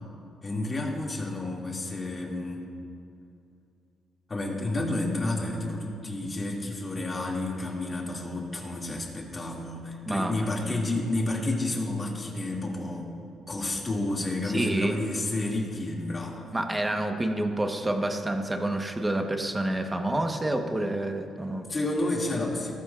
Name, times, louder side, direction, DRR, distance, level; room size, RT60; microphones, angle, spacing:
voice 1, 0.4-2.7 4.3-13.1 13.5-16.5 21.7-22.8, left 2 dB, 30° left, -1 dB, 2.3 m, -30 dB
voice 2, 10.0-10.8 14.4-15.0 16.5-21.7, right 1 dB, 15° right, 4 dB, 1.1 m, -28 dB
18.0 x 14.0 x 2.5 m, 2.5 s
cardioid pair, 90°, 0 cm